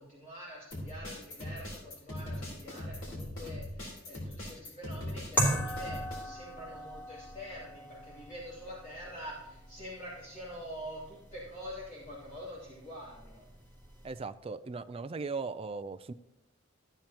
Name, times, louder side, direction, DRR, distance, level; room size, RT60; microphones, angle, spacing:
voice 1, 0.0-13.4, equal, 40° left, -7 dB, 2.8 m, -46 dB
sound 1, 0.7-6.2, left 1 dB, 80° left, 3.8 m, -40 dB
sound 2, 5.4-14.2, right 1 dB, 10° left, 2.4 m, -39 dB
voice 2, 14.0-16.1, right 4 dB, 30° right, 10 dB, 0.4 m, -38 dB
14.0 x 9.0 x 2.9 m, 0.94 s
head